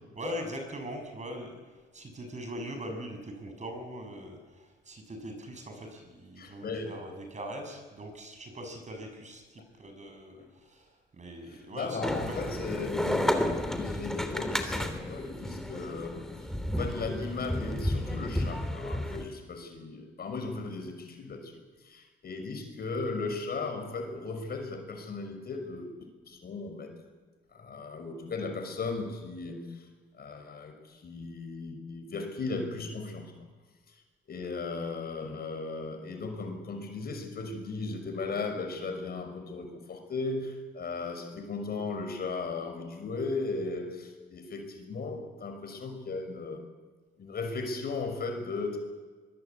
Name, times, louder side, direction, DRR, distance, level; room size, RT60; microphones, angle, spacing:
voice 1, 0.2-12.5, equal, 35° right, 5 dB, 6.9 m, -41 dB
voice 2, 6.4-7.0 10.4-10.5 11.5-13.4 13.7-16.4 16.7-21.5 21.8-26.9 27.5-29.9 30.1-33.3 34.3-46.6 47.2-48.8, left 3 dB, 50° left, 5 dB, 5.9 m, -36 dB
sound 1, 12.0-19.2, left 1 dB, ahead, 3.0 m, -32 dB
23.5 x 22.0 x 8.5 m, 1.4 s
cardioid pair, 90°, 20 cm